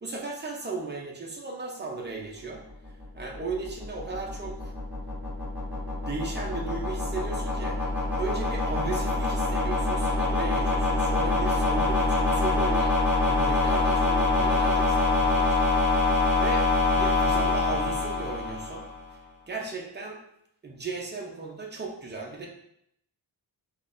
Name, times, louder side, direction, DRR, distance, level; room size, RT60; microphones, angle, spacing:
voice 1, 0.0-2.6 3.1-4.7 6.1-7.8 8.2-15.6 16.4-18.9 19.5-20.2 20.6-22.5, right 3 dB, 25° right, -1 dB, 0.7 m, -36 dB
sound 1, 2.9-19.0, left 3 dB, 5° right, 1.2 m, -25 dB
4.0 x 3.2 x 2.6 m, 0.74 s
wide cardioid pair, 110°, 43 cm